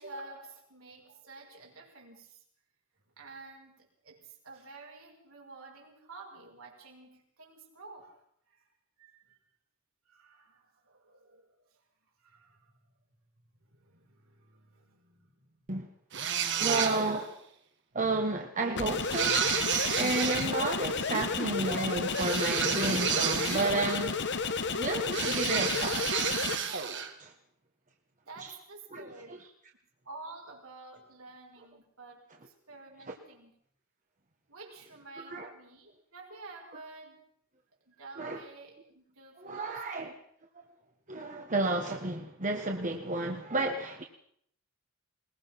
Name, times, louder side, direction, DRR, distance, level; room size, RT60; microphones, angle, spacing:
voice 1, 0.0-2.4 3.2-8.2 8.5-8.6 9.0-9.4 10.1-11.8 12.2-12.8 13.5-15.7 17.9-18.0 28.3-29.4 30.0-33.5 34.5-37.2 37.9-40.2, right 3 dB, 80° right, 5.4 m, -50 dB
sound 1, 16.1-17.3 19.1-20.5 22.1-24.2 25.1-27.1, right 8 dB, 60° right, 2.1 m, -31 dB
voice 2, 16.5-17.3 17.9-19.5 19.9-24.2 24.8-26.0 27.2-27.3 28.9-29.0 35.2-35.5 38.2-38.4 39.4-40.1 41.1-44.0, right 3 dB, 40° right, 1.6 m, -31 dB
sound 2, 18.7-26.6, left 4 dB, 60° left, 1.2 m, -32 dB
21.0 x 20.5 x 6.0 m
head